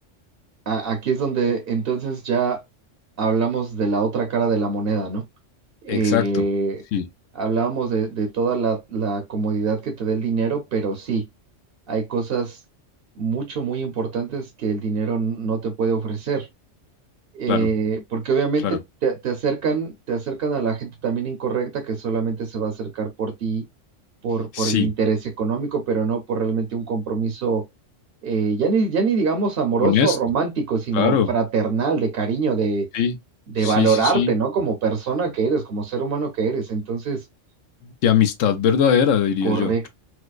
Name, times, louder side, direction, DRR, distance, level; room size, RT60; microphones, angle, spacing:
voice 1, 0.7-2.6 3.2-5.2 5.8-6.8 7.3-11.3 11.9-12.6 13.2-16.5 17.3-23.6 24.2-27.6 28.2-32.9 33.5-37.2 39.4-39.9, right 5 dB, 55° right, 0.8 m, -24 dB
voice 2, 5.9-6.5 6.9-7.1 17.5-17.7 18.6-18.8 24.5-24.9 29.8-30.2 30.9-31.3 32.9-33.2 33.6-34.3 38.0-39.9, left 8 dB, 85° left, 1.0 m, -20 dB
4.5 x 2.0 x 2.4 m
omnidirectional pair, 1.3 m